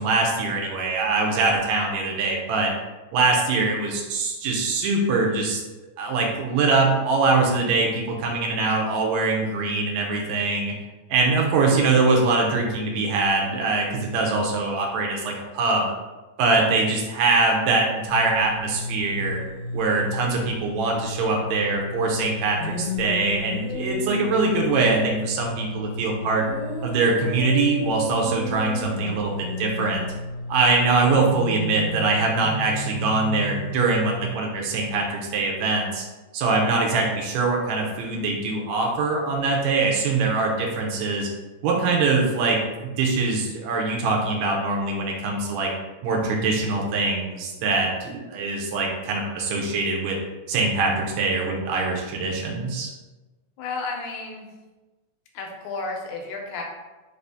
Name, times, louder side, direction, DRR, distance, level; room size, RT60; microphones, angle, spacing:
voice 1, 0.0-2.7 3.1-5.6 6.0-10.7 11.1-15.9 16.4-19.4 19.7-26.5 26.8-30.0 30.5-36.0 36.3-41.3 41.6-45.7 46.0-50.2 50.5-52.9, right 3 dB, 80° right, -1 dB, 1.9 m, -23 dB
sound 1, 18.1-34.3, left 2 dB, 70° left, 1.4 m, -32 dB
voice 2, 53.6-54.5 55.3-56.6, left 3 dB, 90° left, 1 dB, 2.1 m, -32 dB
4.8 x 2.6 x 3.4 m, 1.2 s
omnidirectional pair, 3.3 m